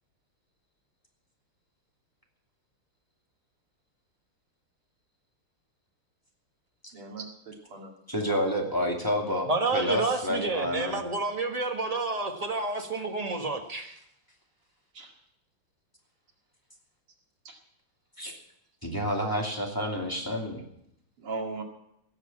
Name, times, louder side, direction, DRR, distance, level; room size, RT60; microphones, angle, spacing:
voice 1, 6.9-7.9 14.9-15.1 17.4-17.6 21.2-21.6, right 3 dB, 85° right, 1 dB, 3.1 m, -38 dB
voice 2, 8.1-11.0 18.2-18.3 18.8-20.7, equal, 10° left, -1 dB, 2.4 m, -29 dB
voice 3, 9.5-14.0, right 3 dB, 20° right, 3 dB, 1.3 m, -29 dB
17.5 x 6.8 x 8.5 m, 0.75 s
omnidirectional pair, 2.4 m